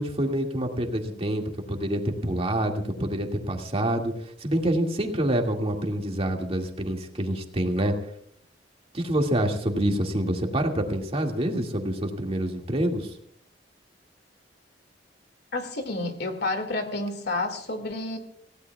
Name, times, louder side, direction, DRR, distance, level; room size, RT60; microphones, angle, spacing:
voice 1, 0.0-7.9 8.9-13.1, right 1 dB, 35° right, 2 dB, 2.2 m, -27 dB
voice 2, 15.5-18.2, left 2 dB, 65° left, 6 dB, 2.3 m, -30 dB
28.5 x 16.5 x 2.4 m, 0.63 s
head